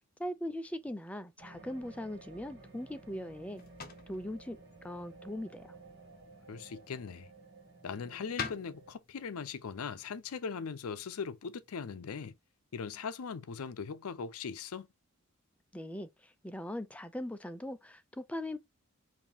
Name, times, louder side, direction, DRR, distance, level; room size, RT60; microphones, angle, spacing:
voice 1, 0.2-3.6 4.1-5.8 15.7-18.6, left 1 dB, 5° left, 0.3 m, -40 dB
sound 1, 1.4-8.9, right 3 dB, 50° right, 1.6 m, -54 dB
sound 2, 2.6-11.8, left 6 dB, 40° left, 0.7 m, -49 dB
voice 2, 6.5-7.3 7.8-12.4 12.7-14.9, left 6 dB, 85° left, 0.5 m, -40 dB
5.3 x 2.6 x 2.9 m
head